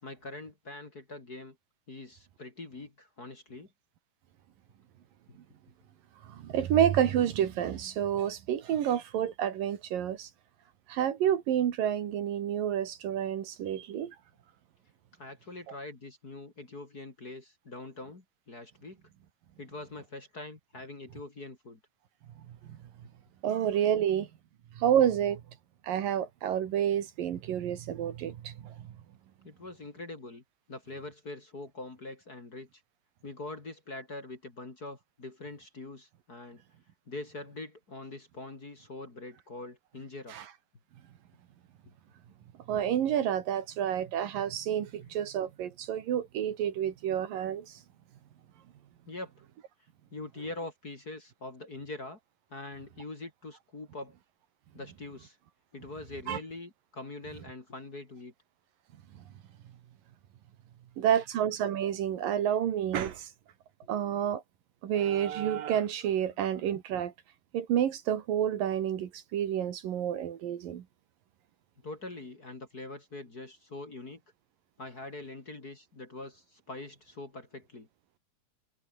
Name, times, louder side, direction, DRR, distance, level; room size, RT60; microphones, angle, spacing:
voice 1, 0.0-1.6 1.9-3.7 5.3-5.4 15.2-19.0 19.6-21.8 29.4-30.4 30.7-32.8 33.2-36.6 37.1-40.4 45.0-45.2 49.1-49.3 50.1-52.2 52.5-54.1 54.7-55.4 55.7-58.3 66.3-66.4 71.8-74.2 74.8-77.9, left 2 dB, 25° left, 3.0 m, -43 dB
voice 2, 6.3-10.3 10.9-14.1 22.7-22.8 23.4-24.3 24.8-25.4 25.8-28.9 40.3-40.4 42.7-47.8 56.3-56.4 61.0-63.3 63.9-64.4 64.8-67.1 67.5-70.8, right 10 dB, 70° right, 3.3 m, -29 dB
omnidirectional pair, 4.3 m